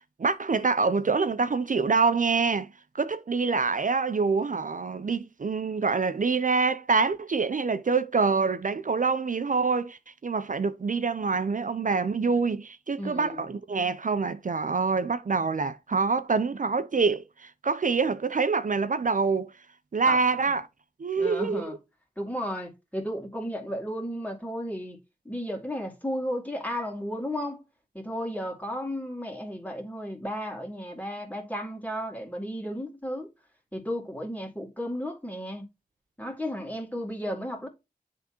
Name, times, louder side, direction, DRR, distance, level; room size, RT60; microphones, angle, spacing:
voice 1, 0.2-2.7 2.9-19.5 19.9-20.6 21.0-21.7, right 4 dB, 55° right, 0.5 m, -26 dB
voice 2, 13.0-13.4 20.1-20.2 21.2-21.8 22.2-25.0 25.3-27.6 27.9-33.3 33.7-35.7 36.2-37.7, equal, 10° left, 2.2 m, -34 dB
10.5 x 3.6 x 2.9 m
wide cardioid pair, 75°, 16 cm